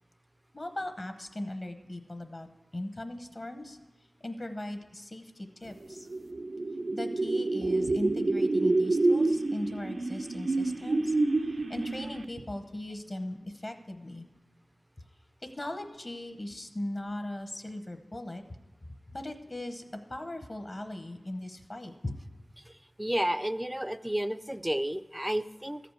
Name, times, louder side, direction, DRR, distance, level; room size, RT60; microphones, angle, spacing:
voice 1, 0.5-2.5 2.7-3.8 4.2-6.1 6.9-11.1 11.5-14.2 15.6-18.4 19.1-19.8 20.1-22.2, left 1 dB, 40° left, 7 dB, 0.8 m, -38 dB
sound 1, 5.9-12.4, right 2 dB, 65° right, 0.5 m, -28 dB
voice 2, 23.0-25.8, right 1 dB, 10° right, 13 dB, 0.4 m, -31 dB
13.5 x 5.1 x 8.0 m, 1.1 s
wide cardioid pair, 75°, 0 cm